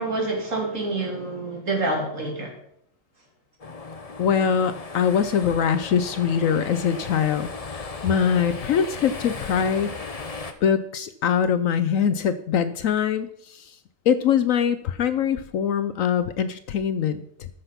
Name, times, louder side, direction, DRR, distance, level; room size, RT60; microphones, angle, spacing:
voice 1, 0.0-2.5, right 2 dB, 55° right, 0 dB, 3.4 m, -27 dB
sound 1, 3.6-10.5, left 4 dB, 30° left, 0.7 m, -36 dB
voice 2, 4.2-10.0 10.6-13.7 14.1-17.5, left 7 dB, 65° left, 12 dB, 1.0 m, -23 dB
13.5 x 6.7 x 5.8 m, 0.71 s
omnidirectional pair, 1.6 m